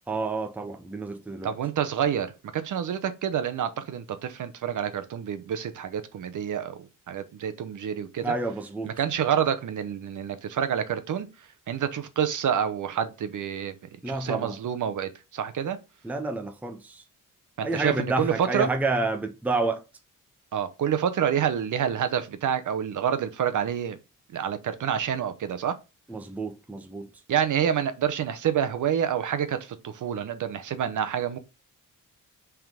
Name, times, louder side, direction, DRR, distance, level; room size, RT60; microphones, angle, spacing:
voice 1, 0.1-1.5 8.2-8.9 14.0-14.6 16.0-17.0 17.6-19.8 26.1-27.1, right 3 dB, 5° right, 0.6 m, -29 dB
voice 2, 1.4-8.3 8.8-11.3 11.7-13.7 14.1-15.8 17.6-18.7 20.5-24.0 24.3-25.7 27.3-31.4, right 8 dB, 65° right, 0.9 m, -28 dB
5.7 x 3.7 x 5.1 m
wide cardioid pair, 170°, 33 cm